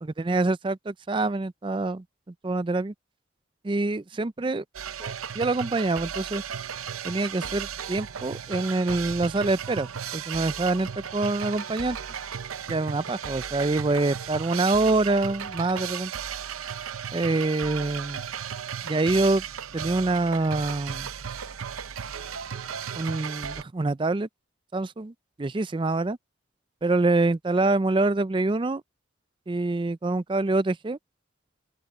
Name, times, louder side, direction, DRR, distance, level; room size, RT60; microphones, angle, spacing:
voice 1, 0.0-2.0 2.4-2.9 3.6-4.6 5.0-6.4 7.0-12.0 12.7-16.1 17.1-18.2 18.8-19.4 19.7-21.1 22.9-24.3 24.7-26.2 26.8-28.8 29.5-31.0, right 2 dB, 25° right, 0.4 m, -25 dB
sound 1, 4.7-23.6, right 8 dB, 90° right, 0.7 m, -35 dB
open air
head